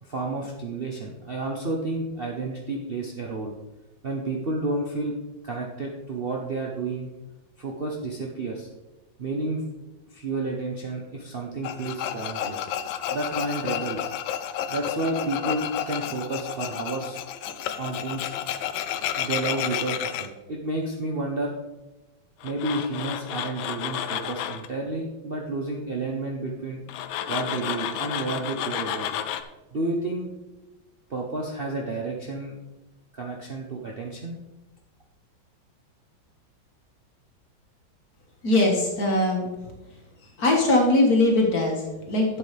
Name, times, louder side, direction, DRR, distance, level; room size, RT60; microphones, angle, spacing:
voice 1, 0.0-3.5 4.0-5.1 5.4-7.1 7.6-8.7 9.2-9.6 10.1-12.7 13.1-14.1 14.7-17.2 17.8-18.3 19.2-21.5 22.4-26.8 27.3-29.1 29.7-30.3 31.1-32.6 33.1-34.4, right 2 dB, 40° right, -1 dB, 0.8 m, -31 dB
Tools, 11.6-20.3 22.4-24.7 26.9-29.4, left 10 dB, 85° left, 1.4 m, -31 dB
voice 2, 38.4-39.5 40.4-42.4, left 2 dB, 50° left, 0 dB, 2.1 m, -21 dB
11.5 x 8.0 x 3.4 m, 1.1 s
omnidirectional pair, 2.1 m